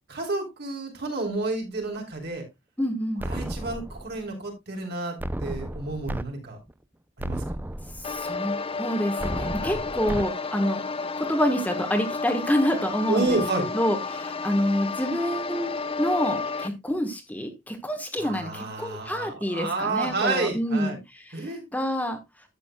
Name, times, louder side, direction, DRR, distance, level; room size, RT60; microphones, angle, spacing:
voice 1, 0.1-2.4 3.2-6.6 7.2-7.4 9.6-9.8 13.1-13.6 18.2-21.0 21.3-21.6, right 3 dB, 55° right, 1 dB, 3.6 m, -30 dB
voice 2, 2.8-3.2 8.0-10.8 11.2-21.0 21.3-21.5 21.7-22.2, equal, 10° left, 5 dB, 1.3 m, -27 dB
sound 1, 3.2-4.2 5.2-6.2 6.7-6.8 7.2-8.2 9.2-10.2, right 1 dB, 10° right, 0.5 m, -33 dB
sound 2, 8.0-16.7, left 4 dB, 30° left, 0.8 m, -32 dB
12.0 x 8.4 x 2.3 m, 0.20 s
head